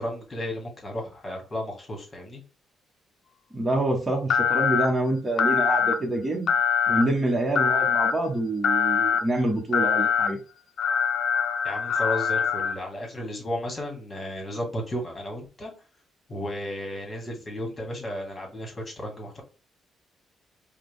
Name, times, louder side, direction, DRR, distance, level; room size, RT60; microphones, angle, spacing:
voice 1, 0.0-2.4 11.6-15.7 16.3-19.4, left 1 dB, 30° left, 1 dB, 2.1 m, -33 dB
voice 2, 3.5-6.6 6.9-10.4, right 1 dB, 20° right, -1 dB, 1.3 m, -26 dB
sound 1, 4.3-4.9 5.4-5.9 6.5-7.0 7.6-8.1 8.6-9.2 9.7-10.3 10.8-12.7, left 7 dB, 65° left, 0.5 m, -23 dB
4.9 x 2.4 x 3.6 m, 0.34 s
cardioid pair, 90°, 0 cm